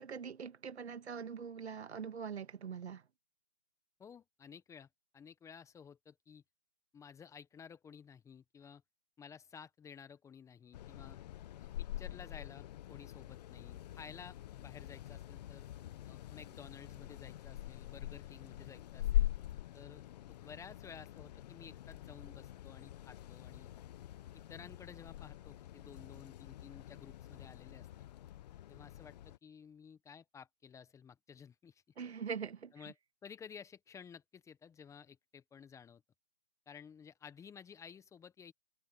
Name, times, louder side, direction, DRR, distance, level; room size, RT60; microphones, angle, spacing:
voice 1, 0.0-3.0 32.0-32.7, right 6 dB, 70° right, 2.1 m, -43 dB
voice 2, 4.0-4.9 5.1-6.4 6.9-8.8 9.2-11.2 11.6-15.7 16.0-19.3 19.7-23.7 24.3-27.9 28.7-31.8 32.7-33.0 33.2-36.0 36.7-38.5, left 7 dB, 10° left, 1.3 m, -54 dB
sound 1, 10.7-29.4, left 13 dB, 40° left, 1.0 m, -43 dB
hypercardioid pair, 140°, 34 cm